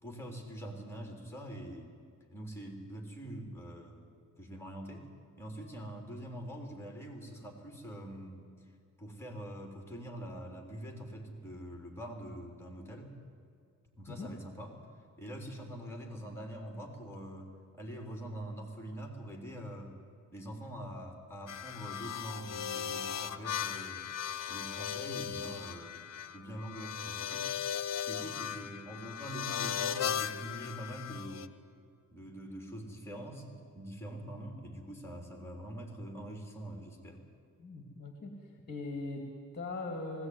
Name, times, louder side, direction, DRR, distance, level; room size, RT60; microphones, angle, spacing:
voice 1, 0.0-1.9 2.3-4.0 4.4-5.1 5.4-8.4 9.0-13.1 14.0-20.0 20.3-24.1 24.5-26.0 26.3-27.5 28.0-31.5 32.1-37.2, right 1 dB, 10° left, 2 dB, 3.7 m, -44 dB
sound 1, 21.5-31.5, left 9 dB, 60° left, 0.9 m, -37 dB
voice 2, 37.6-38.4 38.7-40.3, left 2 dB, 30° left, 3 dB, 2.3 m, -40 dB
19.5 x 16.5 x 9.6 m, 2.3 s
wide cardioid pair, 120°, 30 cm